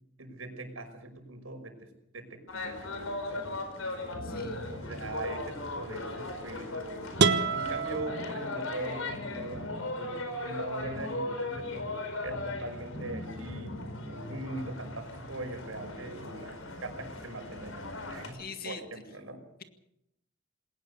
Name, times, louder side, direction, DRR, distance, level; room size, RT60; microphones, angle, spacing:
voice 1, 0.2-1.9 2.1-3.6 4.0-7.1 7.5-19.4, right 2 dB, 85° right, 5 dB, 5.6 m, -41 dB
sound 1, 2.5-18.3, left 2 dB, 90° left, 4.8 m, -38 dB
voice 2, 4.2-4.6 18.3-18.8, left 5 dB, 45° left, 7 dB, 2.0 m, -42 dB
sound 2, 7.2-9.1, right 4 dB, 55° right, 1.3 m, -29 dB
21.0 x 18.5 x 6.7 m, 0.80 s
head